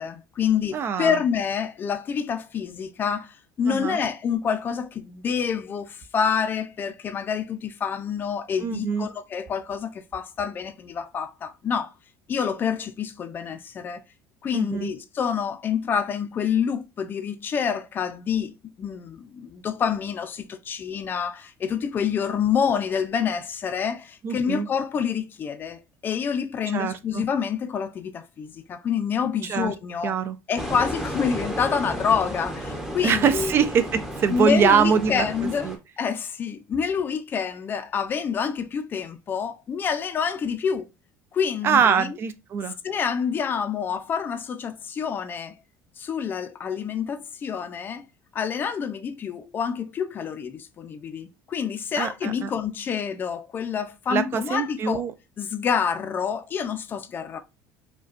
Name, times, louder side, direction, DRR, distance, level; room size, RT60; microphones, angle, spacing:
voice 1, 0.0-11.9 12.3-14.0 14.4-30.1 30.5-33.5 34.3-40.9 41.3-42.1 42.8-45.5 46.0-48.0 48.3-55.0 55.4-57.4, left 7 dB, 30° left, 0.4 m, -27 dB
voice 2, 0.7-1.2 3.7-4.0 8.6-9.1 14.5-14.9 24.2-24.7 26.7-27.2 29.5-29.7 30.0-30.4 33.0-35.3 35.6-35.8 41.6-42.7 52.0-52.5 54.1-55.1, right 6 dB, 35° right, 0.3 m, -23 dB
sound 1, 30.6-35.8, equal, 5° right, 0.7 m, -33 dB
4.9 x 2.2 x 2.5 m
cardioid pair, 150°, 7 cm